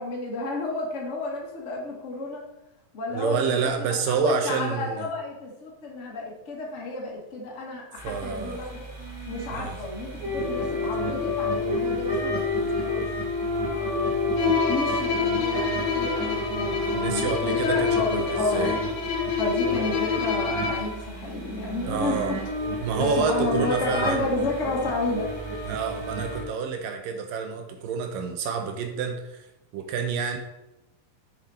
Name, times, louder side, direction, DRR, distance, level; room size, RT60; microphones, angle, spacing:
voice 1, 0.0-2.4 2.9-8.9 9.3-13.0 13.4-14.0 14.7-18.8 19.4-22.4 23.0-25.3, left 2 dB, 80° left, -3 dB, 0.6 m, -31 dB
voice 2, 3.1-5.1 8.0-8.6 9.5-9.8 16.9-18.8 19.8-19.9 21.9-22.3 22.8-24.3 25.6-29.5 29.7-30.4, right 6 dB, 75° right, 6 dB, 2.2 m, -28 dB
sound 1, 8.0-26.4, left 2 dB, 40° right, 1.6 m, -29 dB
Bowed string instrument, 14.4-21.0, left 5 dB, 65° left, 1.8 m, -29 dB
8.1 x 6.5 x 4.2 m, 0.93 s
omnidirectional pair, 4.4 m